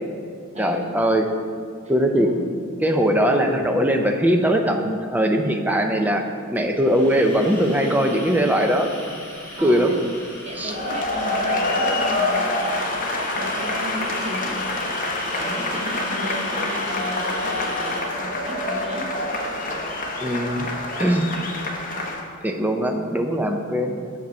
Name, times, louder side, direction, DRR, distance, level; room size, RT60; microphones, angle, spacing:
voice 1, 0.6-1.3 1.9-2.3 2.8-8.9 9.6-9.9 10.6-10.7 20.2-20.7 21.0-21.2 22.4-24.1, equal, 10° right, 4 dB, 0.4 m, -20 dB
sound 1, 6.5-20.0, left 1 dB, 10° left, 1.6 m, -38 dB
voice 2, 9.6-10.0 10.4-12.7 13.3-14.6 15.3-19.1, equal, 30° right, 0 dB, 0.9 m, -34 dB
sound 2, 10.6-22.2, left 2 dB, 35° left, 0.8 m, -26 dB
6.8 x 5.1 x 5.2 m, 2.2 s
head